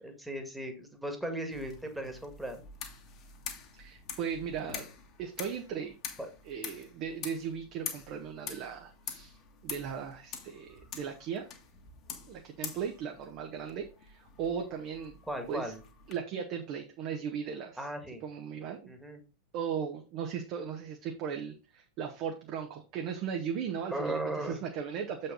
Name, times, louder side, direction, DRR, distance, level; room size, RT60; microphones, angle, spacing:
voice 1, 0.0-2.6 6.2-6.3 15.3-15.8 17.8-18.2 18.9-19.2 23.9-24.6, right 1 dB, 5° right, 5 dB, 1.7 m, -37 dB
sound 1, 1.5-16.2, left 7 dB, 35° left, 1.6 m, -46 dB
voice 2, 3.7-4.9 5.2-5.9 6.4-9.4 9.6-11.5 12.3-15.2 15.5-15.7 16.1-17.8 18.2-18.9 19.5-25.3, right 7 dB, 40° right, 3 dB, 1.1 m, -37 dB
7.6 x 5.5 x 3.8 m, 0.30 s
figure-of-eight pair, 90°, 0 cm